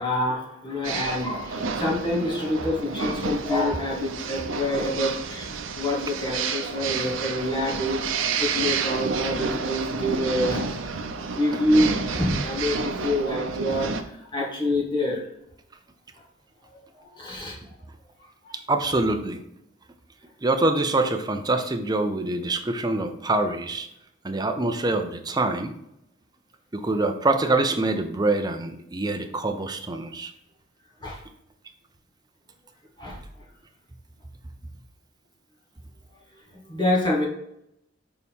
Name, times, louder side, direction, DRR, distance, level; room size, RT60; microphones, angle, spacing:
voice 1, 0.0-10.7 11.3-13.9 14.3-15.2 17.1-17.6 31.0-31.2 33.0-33.2 36.7-37.3, left 1 dB, 25° left, -4 dB, 1.9 m, -26 dB
sound 1, 0.8-14.0, right 5 dB, 75° right, 0.7 m, -30 dB
voice 2, 18.7-19.4 20.4-23.9 24.2-25.7 26.7-30.3, right 2 dB, 20° right, 6 dB, 0.7 m, -25 dB
6.9 x 4.2 x 3.6 m, 0.78 s
head